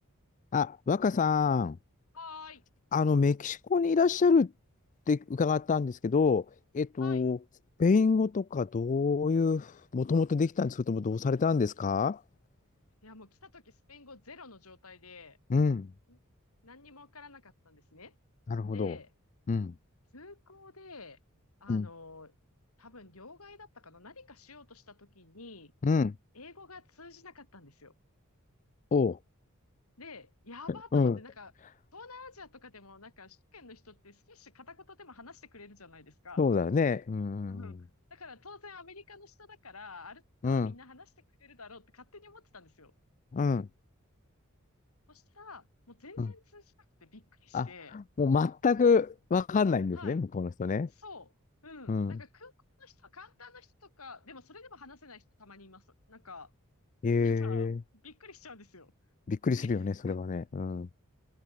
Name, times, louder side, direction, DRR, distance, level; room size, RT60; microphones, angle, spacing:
voice 1, 0.5-1.8 2.9-4.5 5.1-6.5 6.7-7.4 7.8-12.2 15.5-15.9 18.5-19.0 19.5-19.7 21.7-21.9 25.8-26.1 28.9-29.2 30.9-31.2 36.4-37.6 40.4-40.7 43.3-43.7 46.2-46.3 47.5-50.9 51.9-52.2 57.0-57.8 59.3-60.9, left 5 dB, 35° left, 0.4 m, -27 dB
voice 2, 2.1-2.6 7.0-7.3 13.0-15.4 16.1-16.2 16.6-18.2 18.7-19.1 20.1-21.2 21.6-22.3 22.8-25.7 26.3-28.0 30.0-31.5 31.9-36.5 37.5-37.8 38.1-41.1 41.4-42.9 45.1-46.7 47.0-48.0 49.9-50.2 50.9-51.3 51.6-52.5 52.8-56.5 57.2-57.8 58.0-58.9 59.6-59.7 60.1-60.2, left 4 dB, 90° left, 5.2 m, -50 dB
head